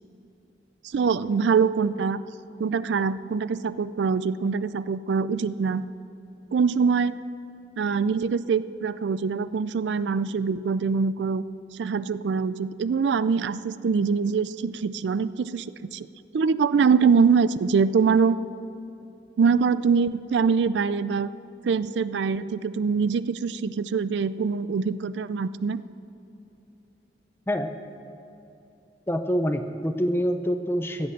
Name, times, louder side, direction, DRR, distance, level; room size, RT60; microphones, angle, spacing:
voice 1, 0.8-2.2 2.6-5.9 6.5-7.2 7.8-11.4 11.7-15.7 15.9-16.1 16.3-18.4 19.4-21.3 21.6-25.8, right 5 dB, 85° right, 16 dB, 0.4 m, -24 dB
voice 2, 29.1-31.1, equal, 15° left, 7 dB, 0.7 m, -26 dB
15.5 x 8.0 x 7.6 m, 2.8 s
head